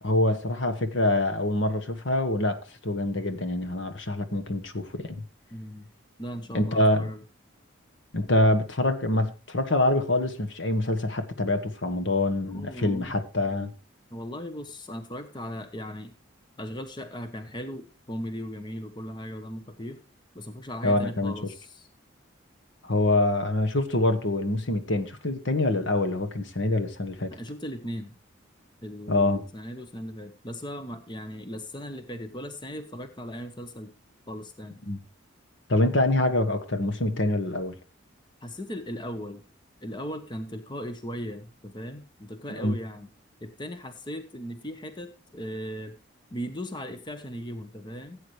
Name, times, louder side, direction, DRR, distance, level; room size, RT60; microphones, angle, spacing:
voice 1, 0.0-5.2 6.5-7.1 8.1-13.7 20.8-21.3 22.8-27.3 29.1-29.4 34.9-35.0 35.7-37.7 42.5-42.8, left 1 dB, 65° left, 1.3 m, -25 dB
voice 2, 5.5-5.9 6.2-7.2 12.5-13.2 14.1-16.1 16.6-20.0 20.3-21.9 27.3-28.2 28.8-33.9 34.3-34.8 38.4-39.4 39.8-43.1 43.4-46.0 46.3-48.2, equal, 20° left, 1.0 m, -38 dB
16.0 x 8.7 x 3.2 m
head